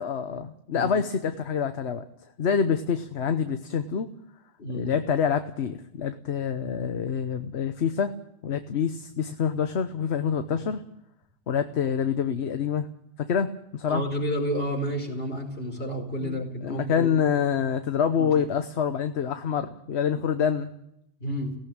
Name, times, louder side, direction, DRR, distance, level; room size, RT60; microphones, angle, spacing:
voice 1, 0.0-2.1 2.4-4.1 4.7-8.1 8.4-10.8 11.5-12.9 13.3-14.0 16.2-20.7, left 7 dB, 70° left, 8 dB, 1.2 m, -26 dB
voice 2, 4.6-4.9 13.9-17.1 18.2-18.3 21.2-21.6, equal, 55° left, 2 dB, 5.1 m, -30 dB
17.5 x 17.0 x 8.8 m, 0.77 s
omnidirectional pair, 1.2 m